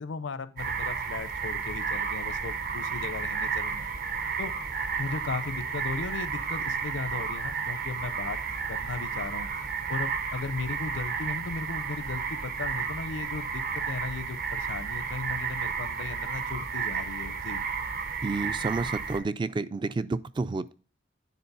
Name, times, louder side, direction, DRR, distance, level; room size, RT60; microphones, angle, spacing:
voice 1, 0.0-3.9 4.4-4.5 5.0-8.4 8.7-9.5 9.9-17.6, left 4 dB, 85° left, 14 dB, 0.6 m, -36 dB
sound 1, 0.6-19.2, right 5 dB, 50° right, 0.9 m, -32 dB
voice 2, 18.2-20.7, right 3 dB, 25° right, 15 dB, 0.3 m, -30 dB
9.4 x 3.9 x 5.4 m, 0.38 s
head